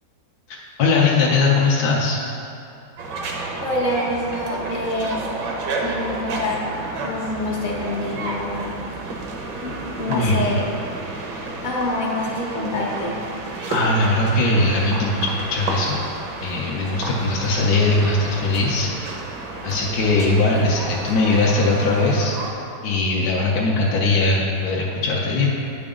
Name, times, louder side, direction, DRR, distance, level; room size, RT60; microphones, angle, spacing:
voice 1, 0.5-2.2 10.1-10.5 13.7-16.0 16.4-19.1 19.6-22.4 22.8-25.5, left 3 dB, 65° left, -4 dB, 1.1 m, -20 dB
sound 1, 3.0-22.5, right 2 dB, 70° right, 1.4 m, -31 dB
voice 2, 3.6-5.2 5.8-6.6 7.0-8.8 9.6-10.6 11.6-13.2, left 1 dB, 45° left, -3 dB, 0.6 m, -26 dB
9.3 x 5.0 x 3.6 m, 2.6 s
omnidirectional pair, 2.1 m